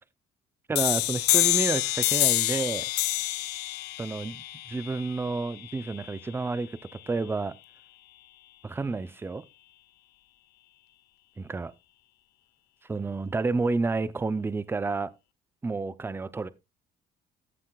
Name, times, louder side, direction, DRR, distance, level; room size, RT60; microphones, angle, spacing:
voice 1, 0.7-2.9 4.0-6.7 7.1-7.6 8.6-9.4 11.4-11.7 12.9-15.1 15.6-16.5, right 3 dB, 15° right, 0.5 m, -30 dB
sound 1, 0.8-6.2, left 17 dB, 90° left, 0.7 m, -27 dB
14.5 x 7.7 x 2.3 m
cardioid pair, 110°, 17 cm